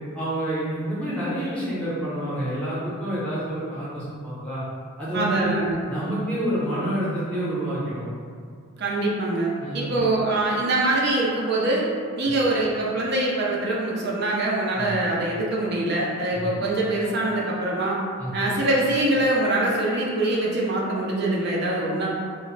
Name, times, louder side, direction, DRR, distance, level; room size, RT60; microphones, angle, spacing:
voice 1, 0.1-4.6 5.0-5.5 5.9-8.0 9.6-9.9 14.8-14.9 16.3-16.4 18.2-18.5, right 1 dB, 5° left, -10 dB, 0.7 m, -28 dB
voice 2, 5.1-5.8 8.8-11.8 12.1-18.0 18.3-22.1, right 2 dB, 45° right, -4 dB, 0.4 m, -24 dB
2.2 x 2.0 x 3.7 m, 2.2 s
head